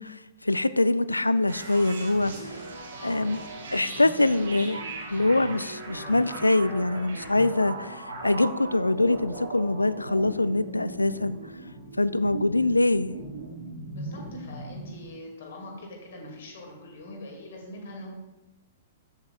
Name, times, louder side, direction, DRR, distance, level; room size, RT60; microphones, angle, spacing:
voice 1, 0.0-2.6 3.0-3.4 3.7-4.8 5.1-11.4 12.0-13.2, left 2 dB, 85° left, 17 dB, 0.3 m, -24 dB
sound 1, 1.5-15.1, right 2 dB, 65° right, 3.0 m, -38 dB
voice 2, 13.9-18.1, left 1 dB, 60° left, 1 dB, 2.3 m, -43 dB
14.0 x 7.9 x 2.4 m, 1.0 s
figure-of-eight pair, 110°, 0 cm